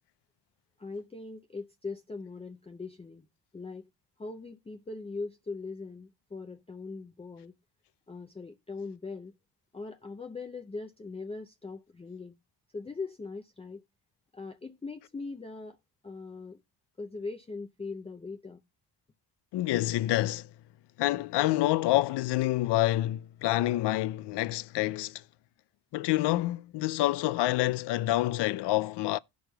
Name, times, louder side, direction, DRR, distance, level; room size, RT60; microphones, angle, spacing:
voice 1, 0.8-3.3 3.5-3.9 4.2-7.5 8.1-9.3 9.7-12.3 12.7-13.8 14.3-15.8 16.0-16.6 17.0-18.6, left 3 dB, 15° left, 0.5 m, -40 dB
voice 2, 19.5-20.5 21.0-25.2 25.9-29.2, left 16 dB, 65° left, 0.5 m, -27 dB
17.0 x 6.2 x 2.2 m
cardioid pair, 105°, 44 cm